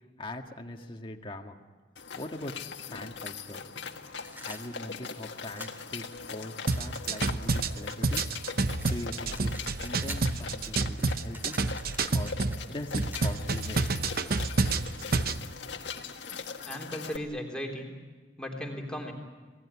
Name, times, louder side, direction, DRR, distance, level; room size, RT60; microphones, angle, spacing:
voice 1, 0.2-1.6 2.1-2.5 2.8-3.6 4.4-8.3 8.6-9.5 9.8-11.6 12.1-14.4, left 1 dB, 30° left, 3 dB, 1.7 m, -41 dB
sound 1, 2.0-17.2, left 5 dB, 75° left, 1.7 m, -41 dB
sound 2, 4.2-5.8 6.7-8.5 8.8-10.4 10.7-14.2, right 1 dB, 10° right, 2.5 m, -47 dB
sound 3, 6.7-12.6 12.9-15.4, right 3 dB, 55° right, 0.9 m, -28 dB
voice 2, 16.7-17.9 18.4-19.1, equal, 5° left, 0 dB, 3.6 m, -36 dB
27.5 x 18.5 x 9.7 m, 1.4 s
head